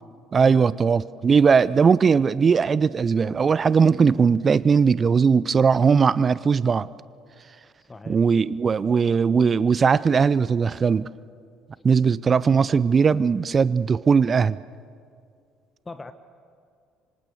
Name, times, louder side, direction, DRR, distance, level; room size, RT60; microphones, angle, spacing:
voice 1, 0.3-6.9 8.1-11.1 11.8-14.6, right 5 dB, 35° right, 19 dB, 0.5 m, -19 dB
voice 2, 7.8-8.2 11.8-11.9 15.8-16.1, left 3 dB, 20° left, 10 dB, 1.1 m, -41 dB
26.5 x 25.5 x 7.1 m, 2.3 s
figure-of-eight pair, 55°, 0 cm